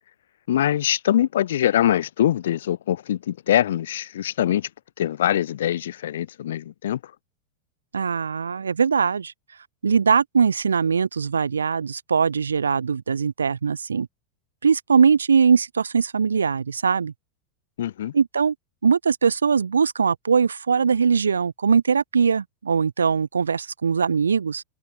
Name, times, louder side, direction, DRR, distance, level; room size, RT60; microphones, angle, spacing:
voice 1, 0.5-4.7 5.0-7.0 17.8-18.1, left 11 dB, 60° left, 1.3 m, -23 dB
voice 2, 7.9-9.3 9.8-14.1 14.6-17.1 18.1-18.5 18.8-24.6, right 6 dB, 75° right, 0.9 m, -21 dB
figure-of-eight pair, 90°, 0 cm